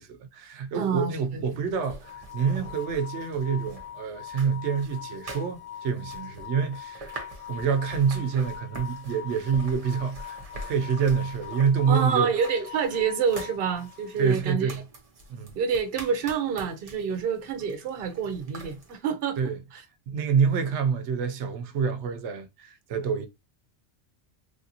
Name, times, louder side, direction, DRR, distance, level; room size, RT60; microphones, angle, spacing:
voice 1, 0.0-7.2 7.5-12.3 14.2-14.8 15.3-15.6 19.4-19.6 20.1-23.3, right 6 dB, 90° right, 0.9 m, -27 dB
voice 2, 0.7-1.4 11.9-14.7 15.6-19.4 19.7-19.8, right 6 dB, 60° right, 0.8 m, -27 dB
sound 1, 1.2-19.0, right 2 dB, 35° right, 0.8 m, -45 dB
sound 2, 2.0-14.3, left 10 dB, 60° left, 0.9 m, -42 dB
3.2 x 2.6 x 2.7 m
omnidirectional pair, 1.1 m